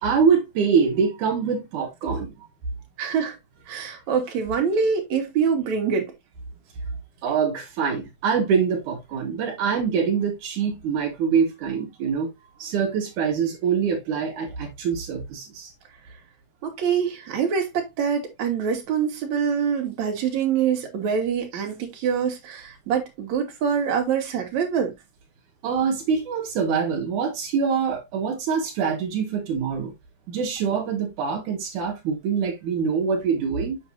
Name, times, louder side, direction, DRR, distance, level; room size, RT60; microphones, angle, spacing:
voice 1, 0.0-2.5 7.2-12.3 12.6-15.7 25.6-29.9 30.3-33.8, right 6 dB, 85° right, 3.0 m, -24 dB
voice 2, 3.0-3.4 3.7-6.1 16.6-24.9, right 6 dB, 70° right, 3.3 m, -25 dB
7.9 x 6.7 x 2.7 m
omnidirectional pair, 3.5 m